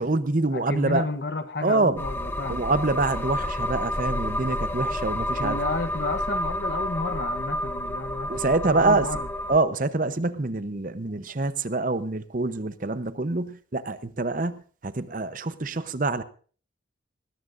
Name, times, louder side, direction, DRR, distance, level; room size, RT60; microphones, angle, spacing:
voice 1, 0.0-1.1 1.6-2.0 2.5-5.6 8.3-9.1 9.5-16.2, right 3 dB, 45° right, 13 dB, 0.8 m, -26 dB
voice 2, 0.5-2.7 5.4-9.3, left 3 dB, 55° left, 12 dB, 1.0 m, -31 dB
sound 1, 2.0-9.6, left 1 dB, 10° left, 0.5 m, -30 dB
19.5 x 17.5 x 2.6 m, 0.42 s
head